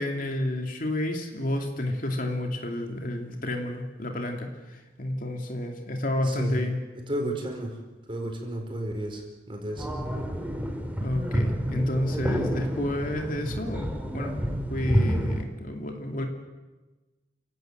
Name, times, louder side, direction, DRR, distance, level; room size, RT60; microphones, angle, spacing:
voice 1, 0.0-6.8 11.0-14.4 14.7-16.3, left 1 dB, 50° left, 3 dB, 2.8 m, -30 dB
voice 2, 6.2-6.6 6.9-7.8 8.1-9.9, right 1 dB, 30° right, 3 dB, 4.6 m, -33 dB
sound 1, 9.8-15.4, equal, 10° right, 2.3 m, -29 dB
30.0 x 17.5 x 7.9 m, 1.2 s
head